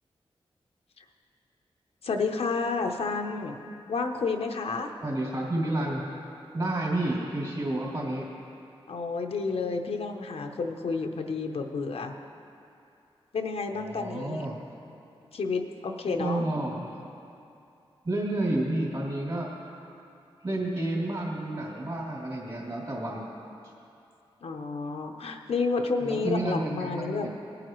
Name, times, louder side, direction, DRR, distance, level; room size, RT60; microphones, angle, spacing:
voice 1, 2.0-3.6 3.9-4.9 8.9-12.1 13.3-14.5 15.3-16.4 24.4-27.3, left 4 dB, 80° left, 4 dB, 0.8 m, -30 dB
voice 2, 5.0-6.0 6.5-8.2 13.7-14.6 16.2-16.9 18.0-19.5 20.4-23.2 26.0-27.3, right 1 dB, 50° right, -4 dB, 2.9 m, -30 dB
18.5 x 8.9 x 3.1 m, 2.6 s
wide cardioid pair, 90°, 10 cm